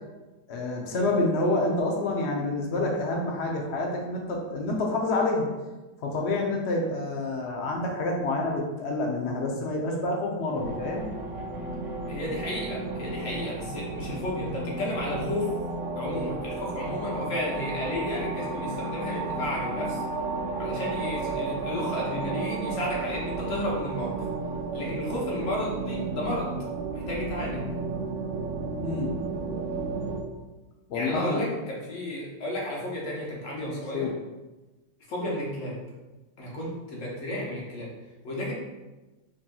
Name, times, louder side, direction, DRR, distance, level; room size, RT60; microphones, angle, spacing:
voice 1, 0.5-5.5 6.0-11.1 28.8-29.1 30.9-31.4 33.6-34.1, left 2 dB, 80° left, -1 dB, 0.6 m, -28 dB
sound 1, 10.5-30.2, right 3 dB, 80° right, 0.7 m, -33 dB
voice 2, 12.1-15.5 15.9-20.0 20.6-24.1 24.7-26.6 26.9-27.6 30.9-34.1 35.1-35.8 36.4-37.9 38.2-38.5, left 1 dB, 55° left, -4 dB, 1.2 m, -32 dB
5.1 x 2.8 x 2.3 m, 1.1 s
omnidirectional pair, 1.9 m